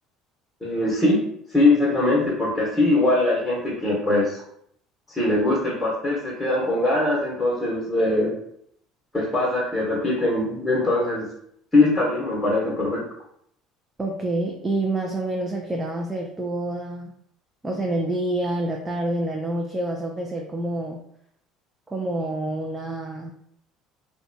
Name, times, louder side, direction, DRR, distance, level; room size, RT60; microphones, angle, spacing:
voice 1, 0.6-1.2 1.5-4.4 5.1-8.3 9.1-11.3 11.7-13.0, left 2 dB, 10° left, -5 dB, 1.0 m, -21 dB
voice 2, 14.0-17.1 17.6-21.0 21.9-23.3, right 1 dB, 20° right, 0 dB, 0.4 m, -27 dB
2.6 x 2.1 x 2.6 m, 0.70 s
hypercardioid pair, 75°, 0 cm